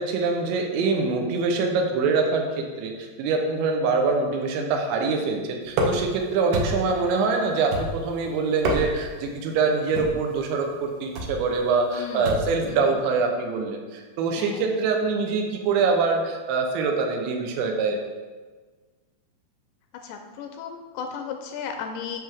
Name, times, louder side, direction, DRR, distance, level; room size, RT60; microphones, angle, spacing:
voice 1, 0.0-2.5 2.8-18.0, right 4 dB, 90° right, 2 dB, 3.2 m, -24 dB
sound 1, 5.7-6.2 6.5-7.0 7.7-8.2 8.5-9.2 9.9-10.3 11.2-11.4 12.3-12.6, right 1 dB, 75° right, 2.9 m, -27 dB
voice 2, 11.9-12.9 14.4-14.8 19.9-22.2, left 6 dB, 85° left, 4 dB, 2.6 m, -36 dB
11.0 x 5.6 x 3.6 m, 1.4 s
omnidirectional pair, 5.1 m